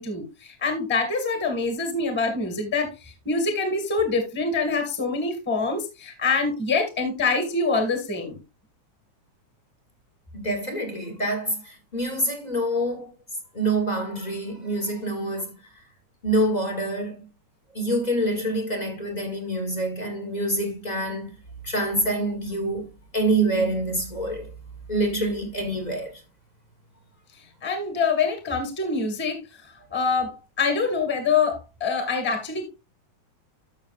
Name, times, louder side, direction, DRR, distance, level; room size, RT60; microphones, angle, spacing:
voice 1, 0.0-8.4 27.6-32.7, left 4 dB, 5° left, 1.4 m, -25 dB
voice 2, 10.3-13.1 13.5-15.6 16.2-17.2 17.7-21.4 21.6-24.5 24.9-26.2, right 1 dB, 25° left, 1.0 m, -26 dB
12.5 x 6.7 x 2.5 m
omnidirectional pair, 3.4 m